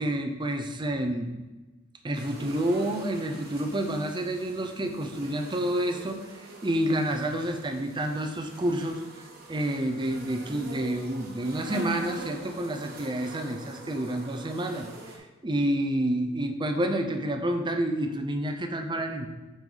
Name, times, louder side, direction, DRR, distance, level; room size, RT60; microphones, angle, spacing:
voice 1, 0.0-1.3 2.0-9.0 9.5-14.9 15.4-19.3, right 1 dB, 20° right, 6 dB, 0.7 m, -29 dB
sound 1, 2.1-15.2, right 2 dB, 50° right, 1.4 m, -44 dB
7.5 x 5.5 x 4.0 m, 1.2 s
head